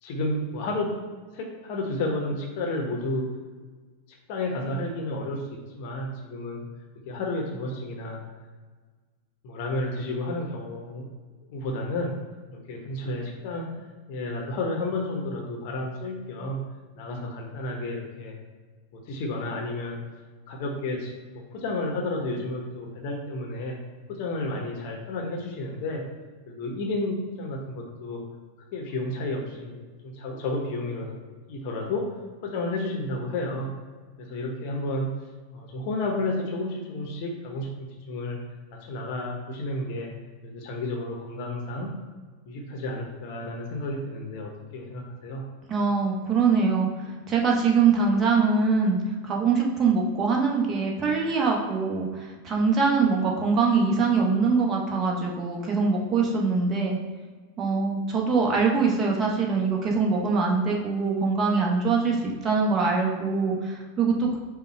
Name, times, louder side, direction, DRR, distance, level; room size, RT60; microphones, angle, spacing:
voice 1, 0.0-0.9 1.3-3.2 4.3-6.6 7.1-8.2 9.4-11.1 11.5-12.1 12.5-13.6 14.1-16.6 17.0-18.3 18.9-20.0 20.5-23.8 24.1-26.0 26.5-28.2 28.7-29.8 30.0-31.2 31.5-32.1 32.4-33.7 34.2-35.1 35.5-38.4 38.8-40.1 40.4-41.9 42.5-45.4, left 2 dB, 45° left, 1 dB, 0.8 m, -31 dB
voice 2, 45.7-46.9 47.3-49.0 49.2-57.0 57.6-64.4, right 4 dB, 25° right, -1 dB, 1.0 m, -23 dB
5.2 x 2.3 x 4.3 m, 1.4 s
figure-of-eight pair, 90°, 0 cm